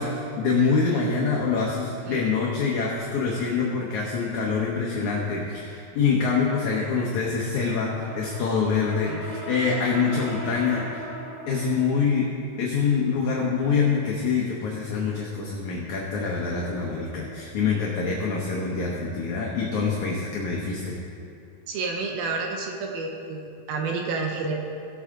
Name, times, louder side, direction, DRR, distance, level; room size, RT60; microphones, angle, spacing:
voice 1, 0.0-11.1 11.5-12.3 12.6-21.0, left 5 dB, 65° left, -3 dB, 2.0 m, -25 dB
Brass instrument, 7.7-11.9, equal, 40° right, 3.5 m, -38 dB
voice 2, 21.7-24.6, right 4 dB, 75° right, 2 dB, 2.6 m, -30 dB
17.0 x 8.1 x 3.7 m, 2.5 s
omnidirectional pair, 4.5 m